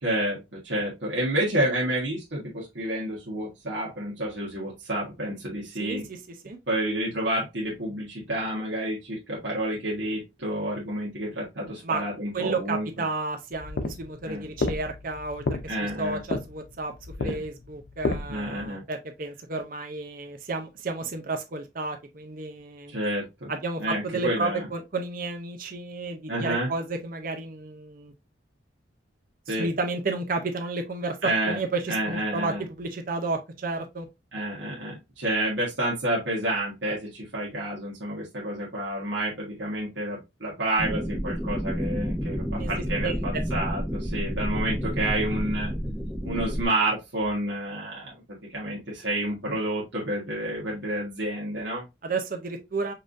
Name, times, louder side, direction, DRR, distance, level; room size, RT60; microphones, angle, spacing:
voice 1, 0.0-6.1 6.7-12.9 14.3-14.4 15.7-16.2 17.2-17.4 18.3-18.8 22.9-23.5 23.8-24.7 26.3-26.7 29.5-29.7 31.2-31.6 31.9-32.6 34.3-45.7 46.2-48.1 48.5-51.8, right 1 dB, 70° right, 1.3 m, -29 dB
voice 2, 12.3-16.9 17.2-22.9 23.5-28.1 29.6-31.2 31.4-34.1 42.5-43.4 52.0-52.9, right 3 dB, 45° right, 0.6 m, -32 dB
sound 1, 13.5-18.7, left 2 dB, 60° left, 0.5 m, -31 dB
sound 2, 40.8-46.6, equal, ahead, 0.5 m, -30 dB
5.4 x 2.6 x 2.5 m
head